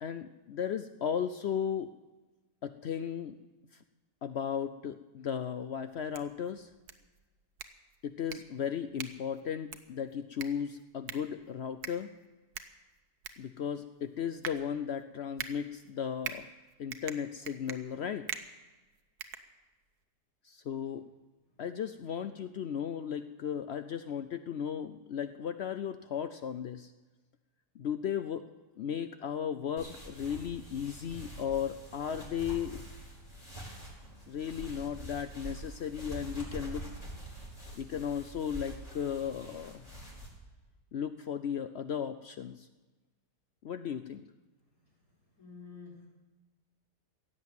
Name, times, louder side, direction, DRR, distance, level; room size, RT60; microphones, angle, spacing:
voice 1, 0.0-1.9 2.6-3.4 4.2-6.7 8.0-12.1 13.4-16.5 16.8-18.4 20.4-21.0 21.6-26.9 27.8-28.4 28.8-32.8 34.3-36.9 37.8-39.9 40.9-42.7 43.6-44.2, left 8 dB, 75° left, 10 dB, 0.5 m, -35 dB
sound 1, 5.9-20.0, right 8 dB, 70° right, 1.4 m, -46 dB
sound 2, 29.8-40.3, right 1 dB, 20° left, 4.2 m, -45 dB
voice 2, 45.2-46.1, left 5 dB, 55° left, -4 dB, 5.4 m, -50 dB
16.5 x 7.9 x 9.3 m, 1.2 s
omnidirectional pair, 1.8 m